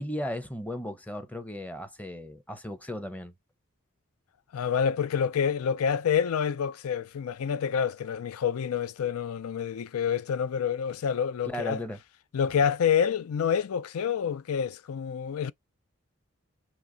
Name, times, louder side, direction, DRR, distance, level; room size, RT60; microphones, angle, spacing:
voice 1, 0.0-3.3 11.4-12.0, left 1 dB, 5° left, 0.8 m, -36 dB
voice 2, 4.5-11.8 12.3-15.5, left 7 dB, 75° left, 0.4 m, -27 dB
5.8 x 2.0 x 3.9 m
head